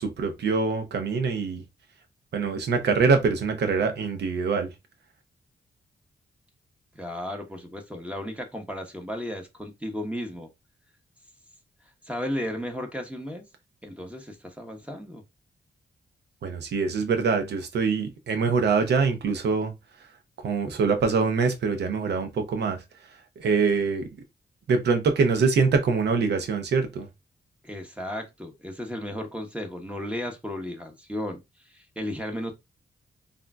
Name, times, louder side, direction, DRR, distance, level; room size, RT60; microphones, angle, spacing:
voice 1, 0.0-1.6 2.3-4.7 16.4-19.7 20.4-22.8 23.4-24.1 24.7-27.1, right 5 dB, 75° right, 0.8 m, -24 dB
voice 2, 6.9-10.5 12.0-13.5 13.8-15.2 27.6-32.5, left 1 dB, 5° right, 0.9 m, -34 dB
3.6 x 2.6 x 2.3 m
cardioid pair, 60°, 18 cm